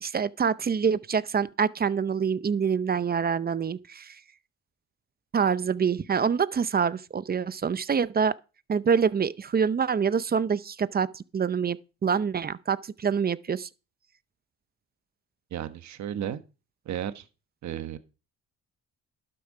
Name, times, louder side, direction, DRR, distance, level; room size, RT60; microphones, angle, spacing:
voice 1, 0.0-4.2 5.3-8.4 8.7-13.7, right 6 dB, 30° right, 0.7 m, -26 dB
voice 2, 15.5-16.4 16.8-17.3 17.6-18.0, right 10 dB, 65° right, 1.3 m, -33 dB
12.0 x 6.9 x 4.8 m
cardioid pair, 90°, 30 cm